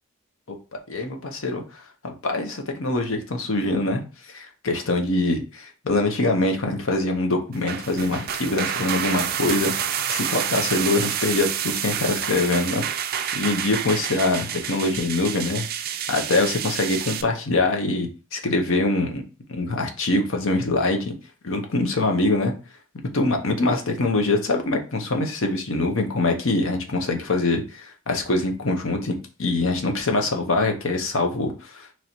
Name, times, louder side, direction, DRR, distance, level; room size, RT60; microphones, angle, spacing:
voice 1, 0.9-1.6 2.0-4.0 4.3-9.7 10.1-12.8 13.3-15.7 16.1-19.2 19.5-21.1 21.4-22.5 23.1-31.9, left 2 dB, 75° left, 3 dB, 0.8 m, -24 dB
sound 1, 7.5-17.2, right 9 dB, 45° right, 0.3 m, -28 dB
3.1 x 2.7 x 4.4 m, 0.34 s
head